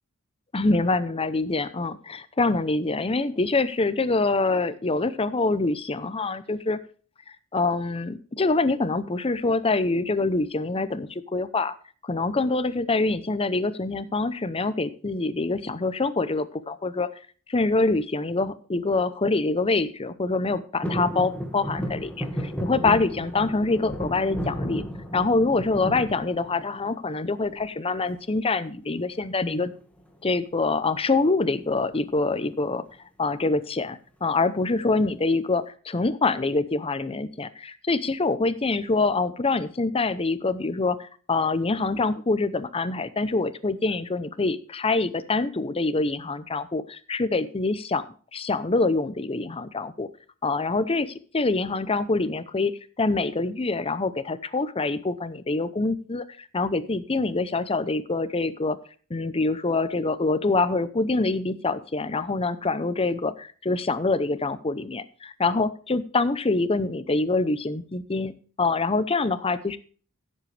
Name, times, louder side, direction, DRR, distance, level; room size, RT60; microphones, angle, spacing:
voice 1, 0.5-6.8 7.5-11.7 12.0-17.1 17.5-24.8 25.1-29.7 30.2-32.8 33.2-48.0 48.3-50.1 50.4-58.8 59.1-69.8, left 3 dB, 25° left, 14 dB, 0.7 m, -25 dB
sound 1, 20.8-27.0 27.4-28.0 29.3-29.7 30.0-30.1 30.4-30.7 31.5-32.4 32.9-33.0, equal, 5° left, 1.8 m, -33 dB
15.5 x 7.7 x 3.3 m, 0.41 s
head